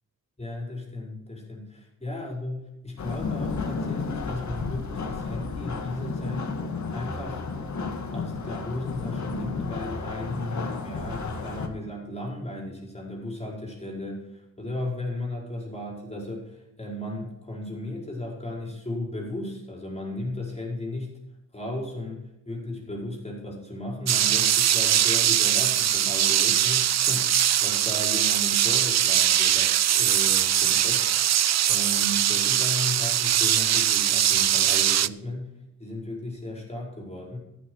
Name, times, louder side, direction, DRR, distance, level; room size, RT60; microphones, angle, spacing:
voice 1, 0.4-6.5 6.9-7.4 8.1-21.1 21.5-31.1 31.7-35.5 35.8-37.4, left 1 dB, 15° left, -1 dB, 4.8 m, -35 dB
sound 1, 3.0-11.7, left 4 dB, 50° left, 2.1 m, -32 dB
sound 2, 24.1-35.1, right 11 dB, 50° right, 0.5 m, -22 dB
13.5 x 12.5 x 4.7 m, 0.91 s
wide cardioid pair, 125°, 36 cm